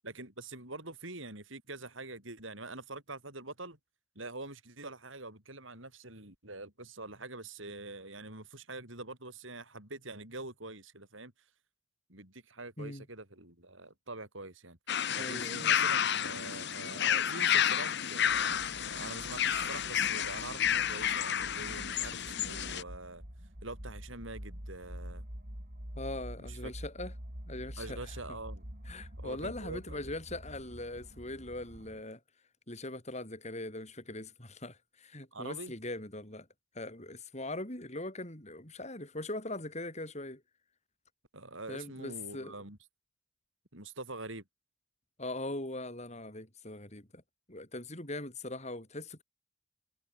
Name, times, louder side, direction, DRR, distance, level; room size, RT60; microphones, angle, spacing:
voice 1, 0.0-3.8 4.2-11.3 12.1-14.8 15.1-23.2 23.6-25.2 26.4-26.7 27.8-28.6 29.2-30.0 35.3-35.7 41.3-42.8 43.7-44.4, right 2 dB, 65° right, 7.4 m, -45 dB
sound 1, 14.9-22.8, left 9 dB, 55° left, 1.6 m, -31 dB
voice 2, 15.2-15.8 26.0-27.1 27.5-28.1 28.9-32.2 32.7-36.5 36.8-40.4 41.7-42.6 45.2-47.2 47.5-49.2, left 2 dB, 30° left, 5.2 m, -41 dB
sound 2, 18.3-32.0, equal, 45° right, 5.9 m, -47 dB
head